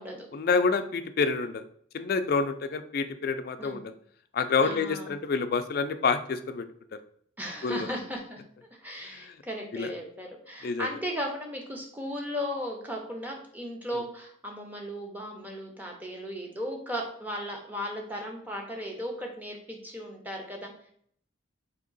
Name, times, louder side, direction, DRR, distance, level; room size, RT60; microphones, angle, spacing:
voice 1, 0.3-1.6 1.9-3.9 4.3-6.7 6.9-7.0 7.6-7.9 9.1-9.4 9.7-9.9 10.6-10.9, left 4 dB, 50° left, 9 dB, 0.3 m, -28 dB
voice 2, 4.6-5.2 7.4-8.4 8.7-20.7, equal, 10° right, 0 dB, 0.6 m, -36 dB
3.6 x 2.8 x 3.9 m, 0.63 s
head